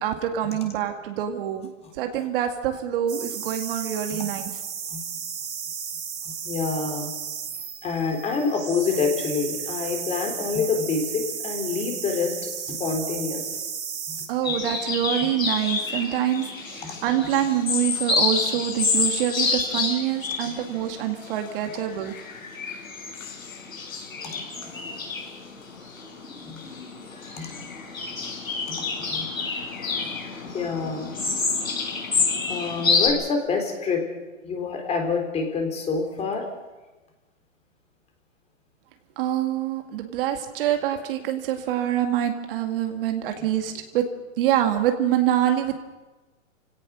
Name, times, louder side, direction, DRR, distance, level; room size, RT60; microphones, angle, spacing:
voice 1, 0.0-4.5 14.3-22.1 39.2-44.0 44.4-45.8, right 11 dB, 45° right, 5 dB, 2.2 m, -25 dB
sound 1, 3.1-14.3, right 7 dB, 80° right, 3.5 m, -34 dB
voice 2, 6.4-7.1 7.8-13.7 14.1-14.2 15.2-15.3 16.8-17.3 24.3-24.8 26.4-26.7 27.4-27.6 28.7-28.8 29.1-29.3 30.5-31.1 32.1-34.0 34.4-36.4, left 4 dB, 15° left, 3 dB, 3.8 m, -27 dB
sound 2, 14.4-33.1, left 4 dB, 85° left, 6.4 m, -28 dB
29.5 x 17.5 x 6.3 m, 1.2 s
hypercardioid pair, 145°, 40 cm